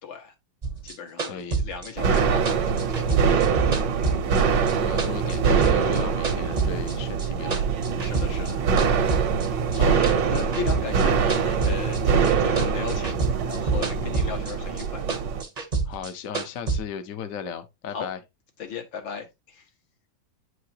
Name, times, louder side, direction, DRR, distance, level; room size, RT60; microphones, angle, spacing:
voice 1, 0.0-0.3 0.8-3.8 8.0-8.6 9.7-13.2 13.5-15.0 17.9-18.1 18.6-19.7, left 7 dB, 80° left, 2.2 m, -36 dB
sound 1, 0.6-4.7 5.0-6.9 7.2-8.5 8.8-12.3 12.6-14.5 14.8-16.8, right 4 dB, 35° right, 0.7 m, -28 dB
voice 2, 1.2-1.6 4.3-7.7 9.9-10.2 15.8-18.2, left 7 dB, 55° left, 1.0 m, -36 dB
sound 2, 2.0-15.4, right 6 dB, 70° right, 1.6 m, -23 dB
8.9 x 4.8 x 2.7 m
omnidirectional pair, 2.0 m